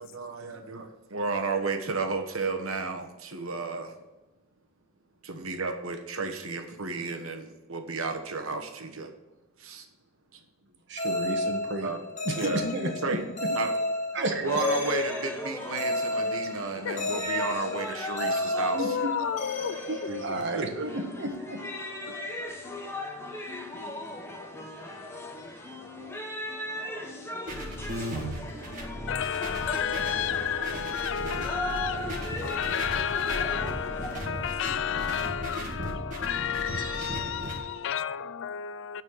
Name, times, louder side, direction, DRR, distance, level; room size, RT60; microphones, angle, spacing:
voice 1, 0.0-3.9 5.2-9.1 9.6-9.9 10.3-10.4 11.8-12.0 12.4-12.6 13.0-13.2 13.5-13.7 14.4-19.0 20.1-20.9 22.1-22.2 34.3-34.5 36.7-37.1, right 3 dB, 75° right, 1.2 m, -33 dB
voice 2, 10.9-11.9 12.2-13.2 14.1-14.3 18.7-19.1 19.9-21.6, right 1 dB, 55° right, 1.3 m, -32 dB
sound 1, 11.0-20.8, left 2 dB, 35° left, 1.4 m, -32 dB
voice 3, 12.4-12.9 13.5-13.6 16.8-17.3 18.8-20.6 29.1-39.0, left 8 dB, 60° left, 0.3 m, -32 dB
sound 2, 14.4-34.2, left 1 dB, 10° left, 0.9 m, -38 dB
sound 3, 27.5-37.6, equal, 35° right, 1.9 m, -37 dB
9.5 x 4.3 x 7.1 m
head